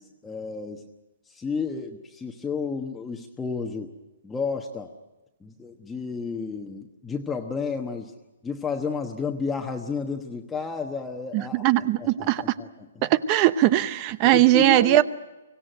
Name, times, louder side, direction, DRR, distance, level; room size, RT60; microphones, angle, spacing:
voice 1, 0.2-0.8 1.3-3.9 4.2-4.9 5.4-8.1 8.4-11.6 12.0-12.7 14.2-15.0, left 5 dB, 10° left, 2 dB, 1.2 m, -31 dB
voice 2, 11.3-12.4 13.0-15.0, right 14 dB, 30° right, 16 dB, 0.8 m, -20 dB
24.5 x 17.0 x 9.1 m, 1.1 s
hypercardioid pair, 160°, 0 cm